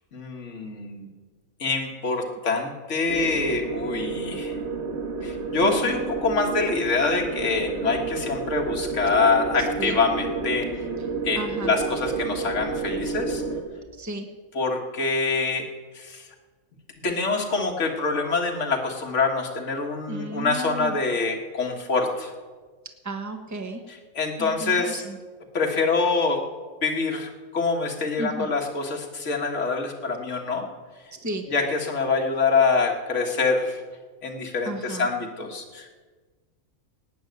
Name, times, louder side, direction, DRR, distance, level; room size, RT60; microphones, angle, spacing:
voice 1, 0.1-1.1 1.6-4.6 5.2-10.7 11.2-13.4 14.6-15.7 15.9-16.2 17.0-22.3 24.2-25.0 25.5-26.4 26.8-30.7 31.5-33.8 34.2-35.9, left 4 dB, 60° left, 1 dB, 2.1 m, -25 dB
sound 1, 3.1-13.6, right 4 dB, 55° right, 1.8 m, -30 dB
voice 2, 5.6-6.0 9.6-10.0 11.3-11.8 14.0-14.3 20.1-21.0 23.0-23.8 24.4-25.2 28.2-28.5 31.1-31.5 34.6-35.1, right 2 dB, 15° right, 5 dB, 1.2 m, -34 dB
18.5 x 6.4 x 9.4 m, 1.4 s
omnidirectional pair, 1.4 m